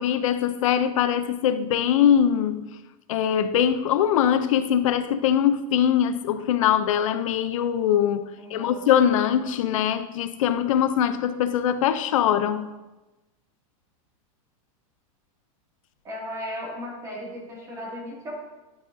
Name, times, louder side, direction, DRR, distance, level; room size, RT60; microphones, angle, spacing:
voice 1, 0.0-2.7 3.1-12.7, left 9 dB, 65° left, 0.5 m, -22 dB
voice 2, 8.4-8.9 16.0-18.3, equal, 15° right, 2.2 m, -36 dB
11.0 x 8.3 x 2.6 m
supercardioid pair, 170°, 18 cm